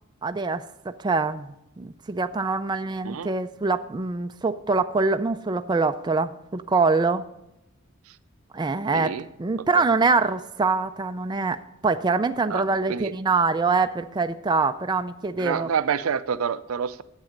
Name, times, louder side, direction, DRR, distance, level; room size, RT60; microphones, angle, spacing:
voice 1, 0.2-7.2 8.5-15.7, right 4 dB, 20° right, 8 dB, 0.4 m, -24 dB
voice 2, 8.9-9.3 9.7-9.8 12.5-13.1 15.4-17.0, right 7 dB, 90° right, 14 dB, 0.5 m, -28 dB
10.5 x 8.3 x 5.1 m, 0.87 s
head